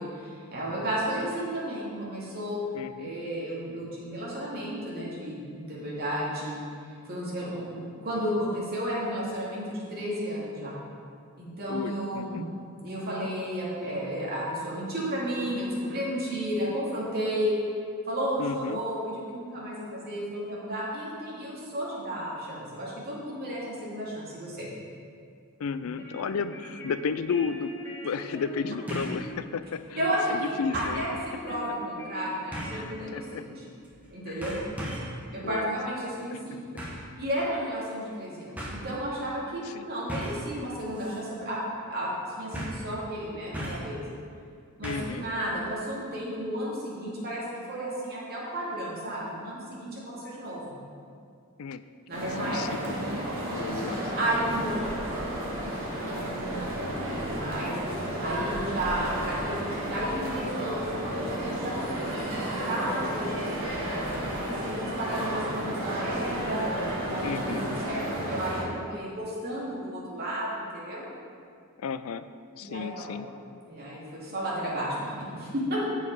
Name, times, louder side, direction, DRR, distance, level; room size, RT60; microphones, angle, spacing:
voice 1, 0.0-2.6 3.0-6.6 7.0-10.8 11.4-17.6 18.0-24.7 30.0-33.5 34.1-34.6 35.3-36.8 37.2-41.6 41.9-42.1 42.4-44.0 44.8-50.7 52.1-52.9 53.9-55.0 55.9-56.6 56.9-64.0 64.4-66.7 67.0-71.0 72.6-73.2 73.7-75.8, equal, 50° right, -6 dB, 2.4 m, -33 dB
voice 2, 2.7-3.1 11.7-12.5 18.4-18.8 25.6-27.7 28.0-30.0 30.3-31.0 32.7-33.5 34.3-34.4 35.4-35.8 36.3-36.6 39.6-39.9 44.8-45.3 51.6-51.8 52.4-53.0 53.5-54.1 67.2-67.7 71.8-72.3 72.6-73.3, left 5 dB, 70° left, 13 dB, 0.4 m, -33 dB
sound 1, 25.7-33.8, right 1 dB, 15° left, 1.4 m, -44 dB
sound 2, 27.0-27.1 28.9-29.2 29.6-29.7 30.7-31.0 32.5-32.9 33.8-34.1 34.4-35.2 36.8-37.1 38.1-38.2 38.6-38.8 40.1-40.5 40.9-41.2 41.5-41.6 42.5-42.9 43.5-43.9 44.8-45.2 45.5-45.6, equal, 5° right, 1.5 m, -36 dB
sound 3, 52.1-68.6, right 1 dB, 65° right, 1.7 m, -32 dB
7.8 x 7.2 x 4.8 m, 2.3 s
head